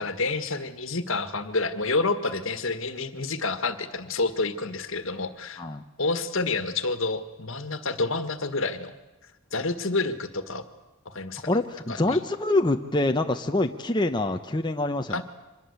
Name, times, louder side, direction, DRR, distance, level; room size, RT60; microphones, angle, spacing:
voice 1, 0.0-5.6 6.0-8.9 9.5-10.6 11.1-11.5 11.9-12.2 15.1-15.2, left 3 dB, 65° left, 11 dB, 1.8 m, -28 dB
voice 2, 11.5-15.2, left 2 dB, 20° left, 5 dB, 0.9 m, -25 dB
25.0 x 20.5 x 8.2 m, 1.1 s
head